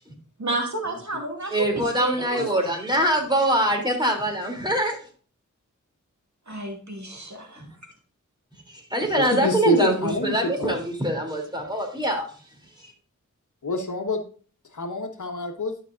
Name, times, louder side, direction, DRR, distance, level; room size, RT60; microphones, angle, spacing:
voice 1, 0.4-2.6 6.5-7.6, right 1 dB, 60° right, 1 dB, 2.4 m, -31 dB
voice 2, 1.5-5.0 7.6-7.7 8.7-12.3 12.8-12.9, right 1 dB, 15° right, 2 dB, 3.1 m, -24 dB
voice 3, 9.2-10.8 13.6-14.2 14.7-15.8, left 1 dB, 65° left, 5 dB, 1.3 m, -26 dB
12.0 x 6.2 x 2.6 m, 0.42 s
wide cardioid pair, 40°, 32 cm